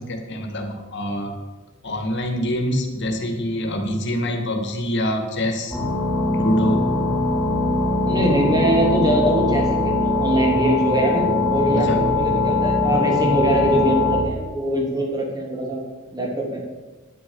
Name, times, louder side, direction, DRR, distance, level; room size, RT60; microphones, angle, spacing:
voice 1, 0.0-1.3 1.8-5.8 6.3-6.9 11.7-12.0, equal, 60° left, 4 dB, 2.2 m, -25 dB
sound 1, 5.7-14.2, left 2 dB, ahead, 5.2 m, -21 dB
voice 2, 8.1-15.8 16.1-16.6, right 1 dB, 20° right, -1 dB, 3.2 m, -22 dB
10.5 x 9.6 x 7.1 m, 1.2 s
head